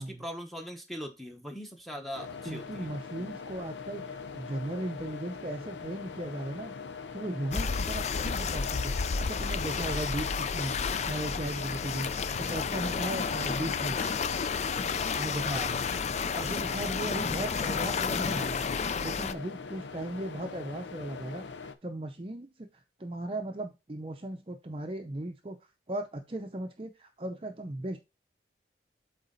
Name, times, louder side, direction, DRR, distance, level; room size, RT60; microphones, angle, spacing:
voice 1, 0.0-3.4 15.5-16.2, equal, ahead, 1 dB, 1.1 m, -42 dB
sound 1, 2.1-21.7, left 4 dB, 90° left, 0.7 m, -43 dB
voice 2, 2.4-6.7 7.1-10.7 11.0-12.1 12.4-14.1 15.1-15.8 16.3-18.6 19.0-21.4 21.8-25.6 25.9-28.0, right 1 dB, 30° right, 5 dB, 0.6 m, -37 dB
sound 2, 7.5-19.3, left 5 dB, 40° left, 0.3 m, -31 dB
8.1 x 3.9 x 3.9 m, 0.25 s
head